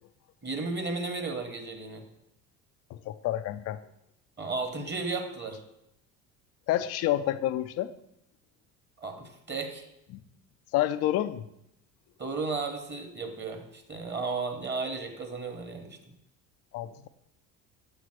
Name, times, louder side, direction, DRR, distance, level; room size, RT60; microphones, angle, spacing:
voice 1, 0.4-2.0 4.4-5.6 9.0-9.8 12.2-16.0, right 3 dB, 25° right, 4 dB, 1.2 m, -34 dB
voice 2, 2.9-3.8 6.7-7.9 10.1-10.2 10.7-11.5 16.7-17.1, left 13 dB, 35° left, 13 dB, 0.4 m, -29 dB
7.2 x 3.2 x 5.9 m, 0.81 s
hypercardioid pair, 65°, 44 cm